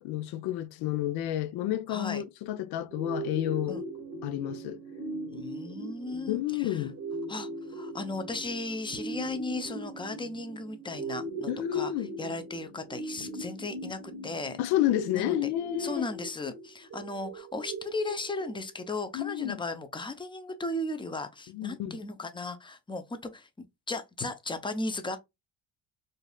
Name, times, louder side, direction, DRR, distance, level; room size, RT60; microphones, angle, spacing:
voice 1, 0.0-3.8 4.2-4.8 6.3-7.0 11.5-12.1 14.6-16.0 19.1-19.6 21.5-22.0, left 13 dB, 65° left, 0.6 m, -30 dB
voice 2, 1.9-2.2 3.7-3.8 5.3-6.9 7.3-14.6 15.1-15.5 15.8-23.5 23.9-25.2, left 2 dB, 10° left, 0.6 m, -36 dB
sound 1, 2.8-16.2, right 4 dB, 35° left, 1.1 m, -50 dB
sound 2, 2.9-18.9, right 1 dB, 40° right, 0.8 m, -40 dB
4.0 x 2.5 x 2.3 m
supercardioid pair, 70°, 42 cm